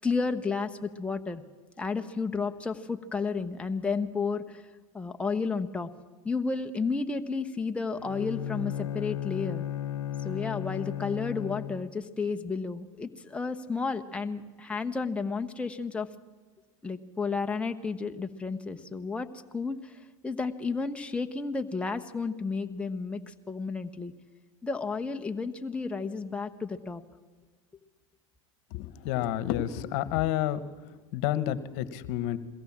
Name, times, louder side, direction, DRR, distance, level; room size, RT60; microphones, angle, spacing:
voice 1, 0.0-1.4 1.8-4.7 4.9-5.9 6.2-9.6 10.2-16.1 16.8-19.3 19.5-24.1 24.6-27.0, left 4 dB, 5° left, 5 dB, 1.0 m, -32 dB
Bowed string instrument, 8.0-12.1, left 11 dB, 90° left, 0.5 m, -35 dB
voice 2, 28.7-30.6 31.1-32.4, left 12 dB, 60° left, 15 dB, 1.3 m, -29 dB
22.0 x 17.0 x 7.4 m, 1.3 s
hypercardioid pair, 105°, 17 cm